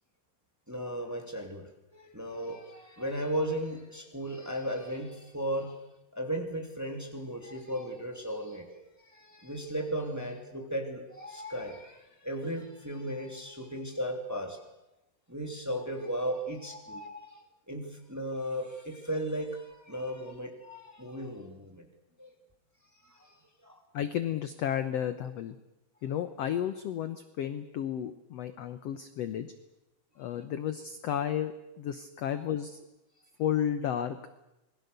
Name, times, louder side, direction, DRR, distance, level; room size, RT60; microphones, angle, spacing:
voice 1, 0.7-5.8 6.1-14.6 15.3-21.9 22.2-22.3 23.0-23.8, equal, 5° right, 3 dB, 2.3 m, -36 dB
voice 2, 23.9-25.6 26.0-29.5 30.2-32.8 33.4-34.2, left 10 dB, 70° left, 11 dB, 1.5 m, -32 dB
27.0 x 21.5 x 6.8 m, 0.93 s
omnidirectional pair, 4.1 m